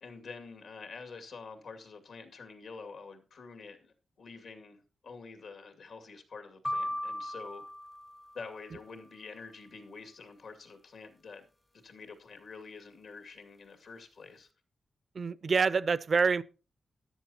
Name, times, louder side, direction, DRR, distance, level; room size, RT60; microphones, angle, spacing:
voice 1, 0.0-7.7 8.3-11.4 11.8-14.5, left 4 dB, 85° left, 2.3 m, -47 dB
sound 1, 6.6-8.8, left 1 dB, 20° left, 0.5 m, -37 dB
voice 2, 15.2-16.4, right 5 dB, 55° right, 0.5 m, -26 dB
14.0 x 11.0 x 2.9 m
cardioid pair, 75°, 0 cm